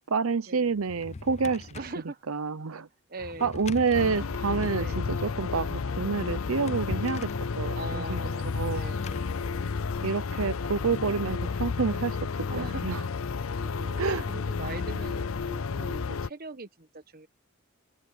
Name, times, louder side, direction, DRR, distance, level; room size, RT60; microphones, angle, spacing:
voice 1, 0.1-1.8 2.3-2.9 3.4-7.3 7.6-8.2 8.5-8.9 10.0-12.2 12.5-13.0 14.0-14.3, right 5 dB, 85° right, 0.7 m, -28 dB
Drawer open or close, 0.7-2.0 3.2-4.8 6.2-7.5 8.8-10.5, left 3 dB, 30° left, 0.4 m, -41 dB
voice 2, 1.7-2.2 3.1-3.5 4.7-5.0 7.7-10.4 11.2-11.5 12.5-12.8 13.3-17.3, right 2 dB, 45° right, 1.3 m, -42 dB
sound 1, 3.9-16.3, left 5 dB, 80° left, 0.6 m, -32 dB
head